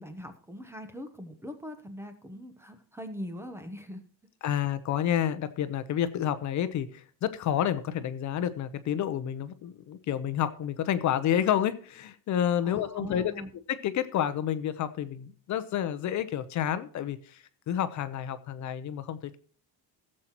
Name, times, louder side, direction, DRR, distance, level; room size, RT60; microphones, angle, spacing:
voice 1, 0.0-4.0 12.6-13.5, left 1 dB, 5° right, 8 dB, 0.9 m, -41 dB
voice 2, 4.4-13.3 13.7-19.4, left 10 dB, 45° left, 12 dB, 0.8 m, -29 dB
16.5 x 7.5 x 3.0 m, 0.43 s
cardioid pair, 175°, 39 cm